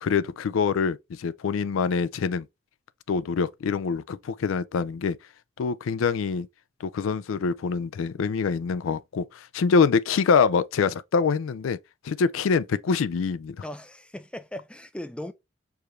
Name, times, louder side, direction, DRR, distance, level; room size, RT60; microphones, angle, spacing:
voice 1, 0.0-2.5 3.1-5.2 5.6-6.5 6.8-11.8 12.0-13.6, left 5 dB, 90° left, 0.4 m, -25 dB
voice 2, 13.6-15.3, left 1 dB, 5° left, 0.4 m, -38 dB
4.8 x 2.5 x 3.2 m
head